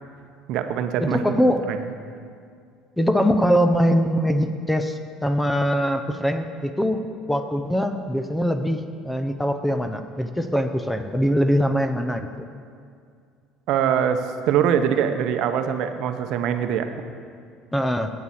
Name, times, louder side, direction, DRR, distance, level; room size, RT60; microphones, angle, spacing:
voice 1, 0.5-1.2 1.7-1.8 13.7-16.9, right 8 dB, 60° right, 8 dB, 0.7 m, -23 dB
voice 2, 1.0-1.6 3.0-12.3 17.7-18.1, equal, 5° left, 8 dB, 0.5 m, -22 dB
8.4 x 7.2 x 8.6 m, 2.3 s
cardioid pair, 140°, 0 cm